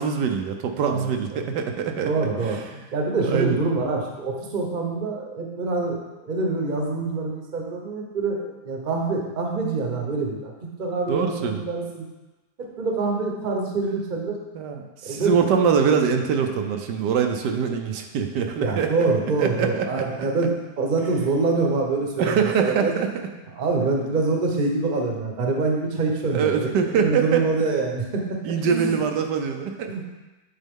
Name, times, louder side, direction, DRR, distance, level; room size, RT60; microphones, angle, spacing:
voice 1, 0.0-2.1 2.4-2.6 3.2-3.6 11.1-11.6 14.5-18.9 19.4-20.0 22.2-23.3 26.3-27.4 28.4-29.9, right 6 dB, 80° right, 4 dB, 1.3 m, -23 dB
voice 2, 0.9-1.5 2.0-10.5 10.8-12.1 12.6-14.4 15.0-15.4 18.6-22.9 23.5-26.7 26.9-28.4 28.6-29.0 29.9-30.1, right 3 dB, 35° right, 0 dB, 1.0 m, -25 dB
9.2 x 4.5 x 3.6 m, 1.1 s
omnidirectional pair, 1.8 m